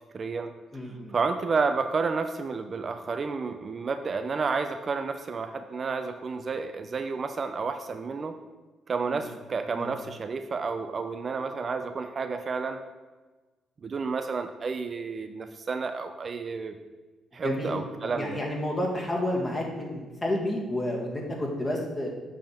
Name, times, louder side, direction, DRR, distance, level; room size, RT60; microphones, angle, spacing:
voice 1, 0.1-0.5 1.1-8.4 8.9-12.8 13.8-16.8 17.3-18.4, right 4 dB, 40° right, 8 dB, 0.4 m, -31 dB
voice 2, 0.7-1.1 9.0-9.3 9.7-9.9 17.4-22.1, left 1 dB, 20° left, -1 dB, 1.8 m, -30 dB
7.5 x 3.6 x 5.8 m, 1.3 s
cardioid pair, 90°, 0 cm